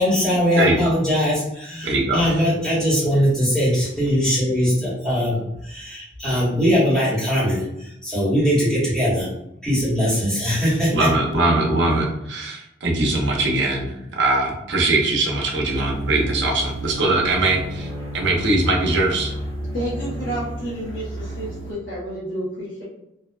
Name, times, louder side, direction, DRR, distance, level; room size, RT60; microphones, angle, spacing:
voice 1, 0.0-9.3 9.6-11.1, equal, 5° left, -10 dB, 1.1 m, -21 dB
voice 2, 0.6-0.9 1.8-2.2 10.9-17.9 18.1-19.3, right 2 dB, 70° right, 0 dB, 0.6 m, -21 dB
sound 1, 15.7-21.7, right 1 dB, 30° right, 0.7 m, -31 dB
voice 3, 19.7-22.8, right 1 dB, 80° left, -9 dB, 0.8 m, -30 dB
2.5 x 2.2 x 2.2 m, 0.84 s
head